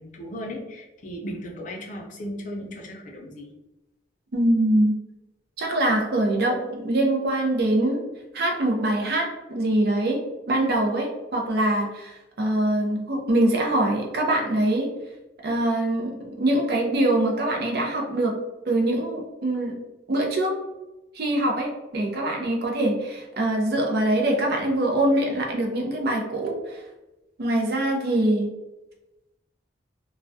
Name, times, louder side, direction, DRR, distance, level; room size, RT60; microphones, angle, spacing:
voice 1, 0.0-3.5, equal, 45° left, -1 dB, 0.5 m, -36 dB
voice 2, 4.3-4.9 5.6-8.0 8.3-14.9 15.4-18.3 18.7-19.7 20.1-20.5 21.1-26.8 27.4-28.5, right 1 dB, 60° right, 0 dB, 0.5 m, -23 dB
2.2 x 2.1 x 2.5 m, 1.0 s
head